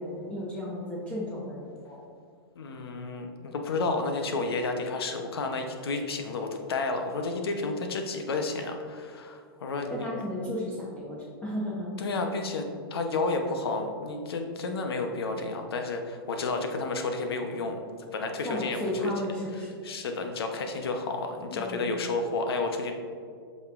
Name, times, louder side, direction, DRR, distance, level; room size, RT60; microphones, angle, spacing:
voice 1, 0.0-2.0 9.9-12.1 18.4-19.7 21.5-22.0, left 1 dB, 10° left, -6 dB, 1.0 m, -34 dB
voice 2, 2.6-10.1 12.0-12.6 12.9-17.8 18.1-18.8 19.6-23.0, left 3 dB, 80° left, 5 dB, 0.9 m, -31 dB
7.8 x 5.3 x 2.5 m, 2.2 s
hypercardioid pair, 130°, 13 cm